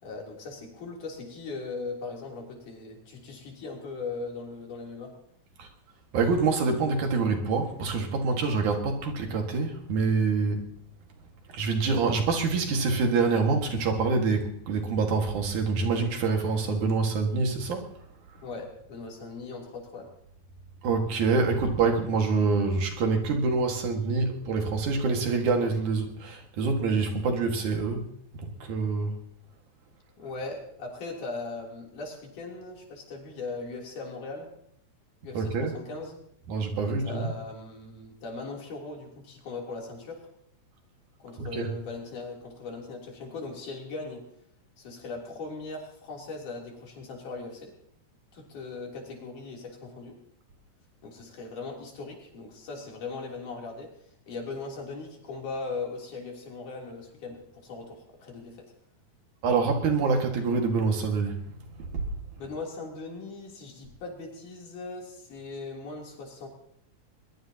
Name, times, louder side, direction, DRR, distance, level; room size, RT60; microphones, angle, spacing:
voice 1, 0.0-5.1 18.4-20.1 30.2-34.5 35.2-36.2 36.8-40.2 41.2-44.2 44.8-47.7 48.3-50.2 51.0-53.9 54.3-58.7 62.4-66.5, left 3 dB, 80° left, -1 dB, 4.8 m, -39 dB
voice 2, 6.1-10.7 11.5-17.9 20.8-28.0 28.4-29.2 35.3-35.8 36.5-37.3 41.4-41.7 59.4-61.4 61.9-62.1, right 4 dB, 75° right, 3 dB, 3.3 m, -26 dB
21.5 x 21.5 x 2.9 m, 0.71 s
omnidirectional pair, 3.5 m